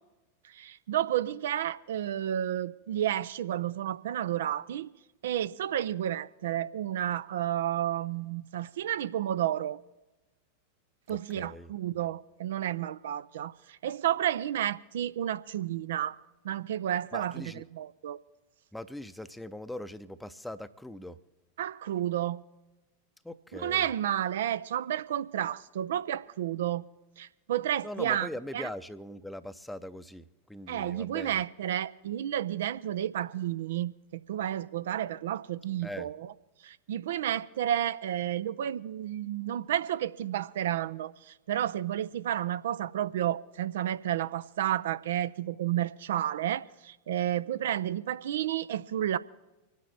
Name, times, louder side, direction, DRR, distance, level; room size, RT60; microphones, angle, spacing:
voice 1, 0.4-4.9 5.2-9.8 11.1-16.2 16.4-17.4 17.7-18.2 21.6-22.4 23.5-26.8 27.2-28.3 28.5-28.7 30.7-36.1 36.6-49.2, right 11 dB, 60° right, 0.4 m, -31 dB
voice 2, 11.1-11.7 17.1-17.6 18.7-21.2 23.2-23.9 27.8-31.4 35.8-36.1, left 1 dB, 5° left, 0.7 m, -41 dB
25.5 x 9.5 x 4.2 m
figure-of-eight pair, 90°, 0 cm